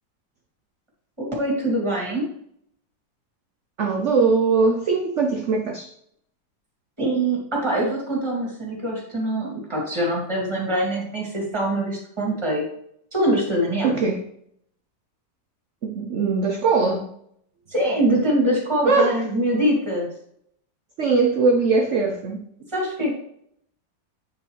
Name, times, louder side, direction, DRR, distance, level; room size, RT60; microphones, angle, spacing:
voice 1, 1.2-2.2 7.0-12.6 13.1-14.0 17.7-20.1 22.7-23.1, right 1 dB, 15° right, -3 dB, 2.3 m, -23 dB
voice 2, 3.8-5.9 13.8-14.2 15.8-17.1 18.8-19.2 21.0-22.4, right 4 dB, 70° right, 5 dB, 0.7 m, -21 dB
8.7 x 4.9 x 3.1 m, 0.70 s
omnidirectional pair, 2.0 m